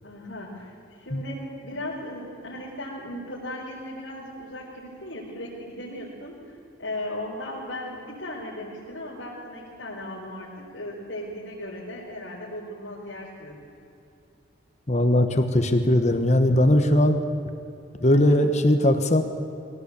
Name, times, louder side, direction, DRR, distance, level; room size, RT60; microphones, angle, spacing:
voice 1, 0.0-13.6 18.1-18.4, left 1 dB, 70° left, -8 dB, 4.7 m, -37 dB
voice 2, 14.9-17.2 18.0-19.2, left 1 dB, 35° left, 7 dB, 1.3 m, -19 dB
22.5 x 17.5 x 8.3 m, 2.7 s
head